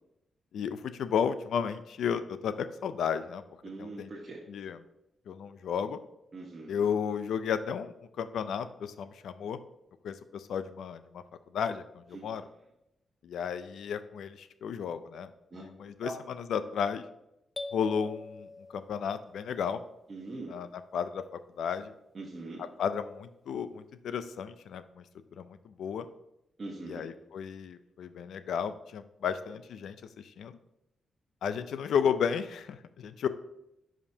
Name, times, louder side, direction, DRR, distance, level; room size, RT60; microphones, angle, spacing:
voice 1, 0.5-3.4 3.8-4.1 4.5-4.8 5.3-6.0 6.7-9.6 10.0-11.2 11.5-12.5 13.2-17.0 17.7-19.8 20.5-21.9 22.6-25.0 25.4-26.1 26.8-30.6 31.4-33.3, left 7 dB, 80° left, 12 dB, 0.5 m, -33 dB
voice 2, 3.6-4.4 6.3-6.8 15.5-15.6 16.0-16.1 20.1-20.5 22.1-22.6 26.6-27.0, right 3 dB, 35° right, -4 dB, 1.2 m, -41 dB
sound 1, 17.6-19.5, left 3 dB, 20° left, 0.5 m, -43 dB
10.5 x 5.1 x 2.8 m, 0.85 s
wide cardioid pair, 135°, 0 cm